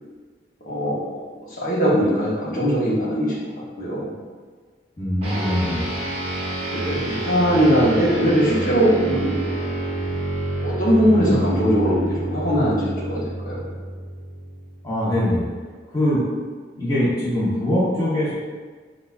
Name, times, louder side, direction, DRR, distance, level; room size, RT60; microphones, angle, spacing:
voice 1, 0.7-1.0 1.5-3.4 3.8-4.2 5.4-5.6 6.7-9.3 10.6-13.7, equal, 50° left, -7 dB, 1.0 m, -20 dB
voice 2, 5.0-5.9 14.8-15.5 15.9-16.2 16.7-18.3, left 1 dB, 20° left, -9 dB, 0.9 m, -22 dB
sound 1, 5.2-14.9, right 2 dB, 35° right, 0.8 m, -28 dB
4.7 x 2.4 x 2.4 m, 1.5 s
head